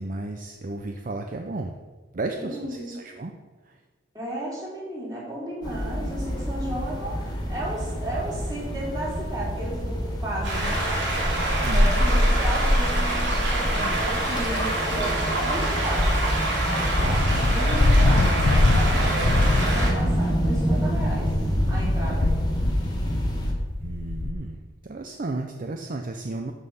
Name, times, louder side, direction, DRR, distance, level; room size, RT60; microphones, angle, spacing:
voice 1, 0.0-1.8 2.1-3.3 3.7-3.8 11.6-12.0 23.8-26.5, right 2 dB, 45° right, 4 dB, 0.6 m, -33 dB
voice 2, 2.4-3.0 4.1-10.8 11.7-16.1 16.6-18.4 18.7-21.3 21.7-22.3, right 1 dB, 20° right, -6 dB, 3.6 m, -34 dB
sound 1, 5.6-23.5, equal, 25° left, 1.7 m, -26 dB
sound 2, 10.4-19.9, right 2 dB, 70° right, 3.4 m, -27 dB
sound 3, 16.9-24.3, left 2 dB, 65° left, 0.7 m, -23 dB
12.5 x 5.6 x 5.6 m, 1.3 s
head